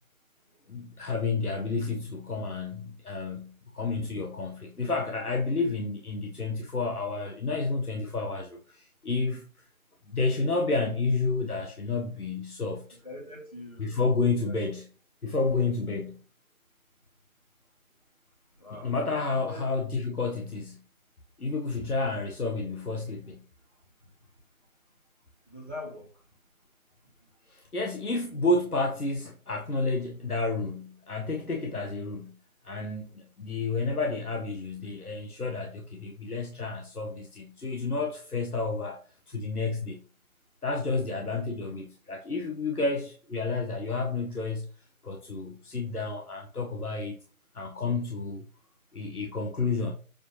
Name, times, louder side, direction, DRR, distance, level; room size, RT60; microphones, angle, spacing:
voice 1, 0.7-9.4 10.1-12.9 13.8-14.9 15.2-16.2 18.7-20.8 21.4-23.4 27.5-32.3 32.6-39.0 39.3-40.0 40.6-44.7 45.0-47.2 47.5-48.4 48.9-49.9, left 3 dB, 85° left, 1.4 m, -30 dB
voice 2, 12.9-14.0 14.5-14.6 18.6-18.9 19.4-19.7 25.5-26.1, left 2 dB, 25° left, 1.8 m, -42 dB
7.5 x 5.1 x 2.8 m
figure-of-eight pair, 180°, 44 cm